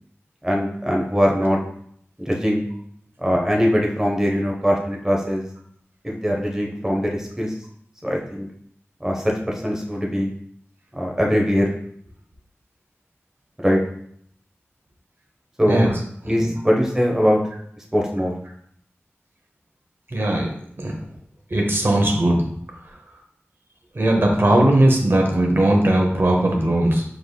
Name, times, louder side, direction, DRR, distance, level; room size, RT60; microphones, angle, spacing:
voice 1, 0.4-1.6 2.2-2.6 3.2-5.5 6.0-7.5 8.0-8.5 9.0-10.3 10.9-11.7 13.6-13.8 15.6-15.9 16.2-17.4 17.9-18.3, equal, 10° right, -1 dB, 0.7 m, -21 dB
voice 2, 20.1-20.5 20.8-20.9 21.5-22.4 24.0-27.0, right 1 dB, 50° right, 0 dB, 0.8 m, -18 dB
5.0 x 3.8 x 2.2 m, 0.66 s
wide cardioid pair, 60°, 5 cm